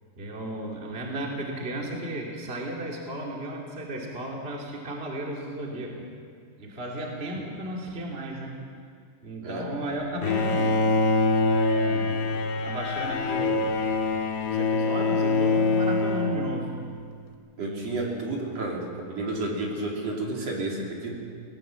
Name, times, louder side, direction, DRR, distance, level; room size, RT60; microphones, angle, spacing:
voice 1, 0.2-6.0 6.6-8.6 9.2-10.9 11.4-12.2 12.6-13.7 14.5-16.7 17.6-18.1, right 1 dB, 25° right, -1 dB, 1.5 m, -34 dB
Bowed string instrument, 10.2-17.0, left 3 dB, 75° left, 3.2 m, -24 dB
voice 2, 17.6-21.2, right 2 dB, 40° right, -2 dB, 3.4 m, -31 dB
19.0 x 18.5 x 7.5 m, 2.2 s
omnidirectional pair, 5.1 m